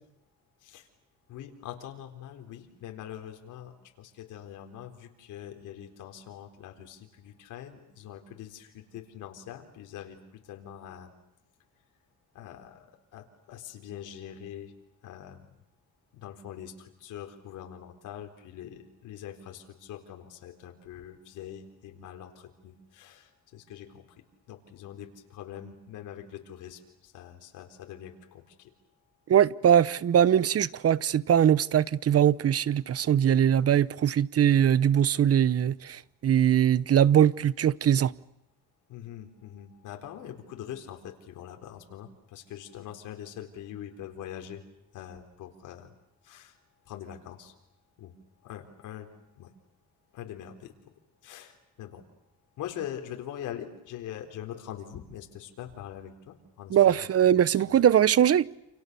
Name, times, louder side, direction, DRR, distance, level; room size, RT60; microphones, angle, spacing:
voice 1, 1.3-11.1 12.3-14.7 15.0-15.5 16.1-28.7 38.9-44.6 44.9-45.9 46.2-46.6 46.9-47.5 48.0-48.1 48.4-49.1 49.3-49.5 50.1-50.9 51.2-52.0 52.6-57.1 57.4-57.9, left 10 dB, 85° left, 4.1 m, -43 dB
voice 2, 29.3-38.1 56.7-58.5, right 9 dB, 50° right, 0.9 m, -21 dB
29.0 x 28.5 x 6.9 m
cardioid pair, 90°, 30 cm